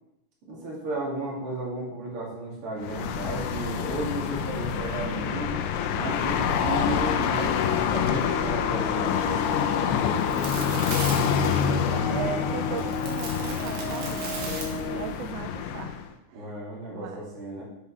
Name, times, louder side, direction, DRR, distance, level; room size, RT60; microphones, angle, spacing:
voice 1, 0.5-5.5 5.9-9.2 11.1-11.2 16.3-17.6, right 2 dB, 35° right, -5 dB, 2.7 m, -34 dB
sound 1, 2.8-16.1, left 7 dB, 80° left, 2.7 m, -27 dB
sound 2, 8.2-15.0, left 3 dB, 50° left, 3.3 m, -35 dB
sound 3, 9.4-15.3, right 4 dB, 65° right, 3.1 m, -39 dB
voice 2, 10.6-16.0 16.3-16.5 16.9-17.3, right 9 dB, 85° right, 7 dB, 2.5 m, -38 dB
8.1 x 5.5 x 5.8 m, 0.85 s
omnidirectional pair, 5.5 m